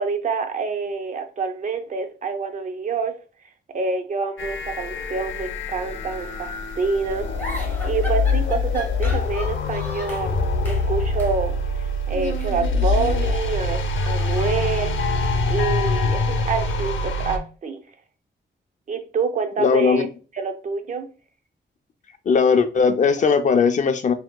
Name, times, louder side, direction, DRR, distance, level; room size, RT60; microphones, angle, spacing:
voice 1, 0.0-3.1 3.7-6.5 6.8-7.3 7.6-10.4 10.6-13.8 14.1-14.9 15.5-17.8 18.9-20.1 20.4-21.1, right 4 dB, 40° right, 0.6 m, -27 dB
sound 1, 4.4-17.4, left 3 dB, 85° left, 0.7 m, -24 dB
sound 2, 7.4-10.3 10.6-10.9 11.2-11.4 12.3-13.5 13.8-16.2, equal, 10° left, 1.1 m, -38 dB
voice 2, 19.6-20.1 22.3-24.1, left 5 dB, 40° left, 0.4 m, -18 dB
5.9 x 2.9 x 2.2 m
wide cardioid pair, 175°, 19 cm